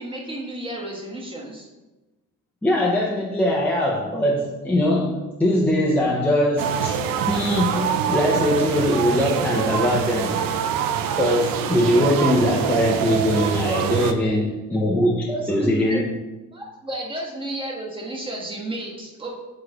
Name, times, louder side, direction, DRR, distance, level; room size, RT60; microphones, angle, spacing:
voice 1, 0.0-1.7 15.3-16.0 16.5-19.3, right 1 dB, 15° right, -2 dB, 1.3 m, -32 dB
voice 2, 2.6-7.0 7.3-10.4 11.2-16.0, left 1 dB, 5° left, -4 dB, 0.7 m, -21 dB
sound 1, 6.6-14.1, right 8 dB, 70° right, 0.6 m, -25 dB
8.0 x 3.1 x 4.9 m, 1.1 s
cardioid pair, 140°, 35 cm